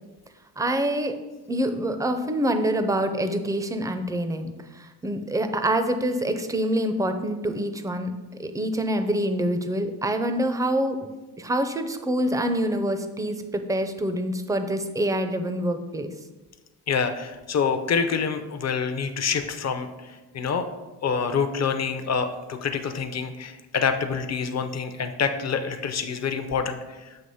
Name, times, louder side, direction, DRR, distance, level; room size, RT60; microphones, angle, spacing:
voice 1, 0.6-1.2 1.5-8.1 8.4-11.1 11.4-16.1, right 1 dB, 10° right, 8 dB, 0.5 m, -26 dB
voice 2, 16.9-19.9 20.3-20.7 21.0-26.8, left 6 dB, 40° left, 8 dB, 0.6 m, -26 dB
7.8 x 2.9 x 5.5 m, 1.1 s
cardioid pair, 110°, 40 cm